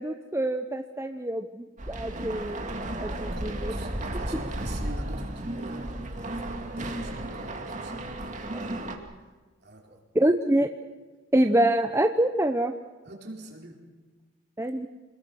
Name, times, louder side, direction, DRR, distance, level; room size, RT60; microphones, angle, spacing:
voice 1, 0.0-2.7 3.0-3.7 10.1-10.7 11.3-12.7 14.6-14.9, right 1 dB, 15° right, 6 dB, 0.8 m, -25 dB
sound 1, 1.8-9.0, right 1 dB, 35° right, 2.5 m, -34 dB
voice 2, 3.2-8.7 9.6-10.0 13.0-13.8, right 1 dB, 50° right, 1 dB, 4.5 m, -44 dB
28.0 x 20.5 x 6.3 m, 1.3 s
head